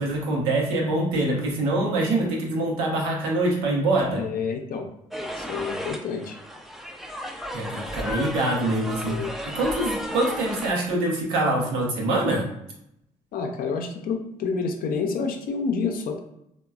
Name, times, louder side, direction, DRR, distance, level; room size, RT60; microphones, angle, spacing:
voice 1, 0.0-4.2 7.5-9.2 9.5-12.4, right 2 dB, 85° right, -2 dB, 0.7 m, -24 dB
voice 2, 4.2-4.9 5.3-6.4 9.0-9.4 13.3-16.2, left 5 dB, 60° left, 3 dB, 0.5 m, -28 dB
sound 1, 5.1-10.7, equal, ahead, 0.4 m, -33 dB
3.0 x 2.2 x 2.3 m, 0.78 s
hypercardioid pair, 50°, 16 cm